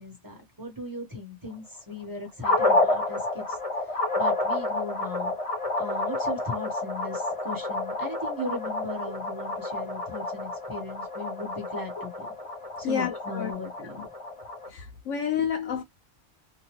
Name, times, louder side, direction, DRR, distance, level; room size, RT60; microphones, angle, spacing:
voice 1, 0.0-3.6 3.8-5.3 5.8-12.3 12.8-14.1, left 2 dB, 20° right, 0.9 m, -37 dB
sound 1, 2.4-14.7, left 2 dB, 40° left, 0.6 m, -29 dB
voice 2, 12.8-13.5 14.0-14.1 14.7-15.8, left 8 dB, 85° left, 1.0 m, -29 dB
2.8 x 2.2 x 2.9 m
omnidirectional pair, 1.3 m